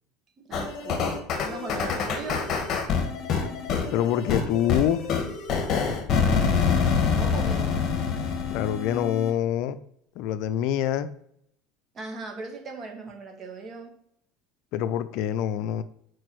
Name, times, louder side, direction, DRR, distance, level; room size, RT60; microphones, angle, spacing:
voice 1, 0.4-1.1 1.4-2.5 7.1-7.8 11.9-13.9, right 3 dB, 35° right, 3 dB, 1.7 m, -38 dB
sound 1, 0.5-9.3, left 5 dB, 45° left, 1.4 m, -26 dB
voice 2, 3.9-5.0 8.5-9.8 10.2-11.1 14.7-15.8, left 10 dB, 65° left, 12 dB, 0.5 m, -25 dB
4.8 x 4.6 x 6.1 m, 0.70 s
supercardioid pair, 100°, 0 cm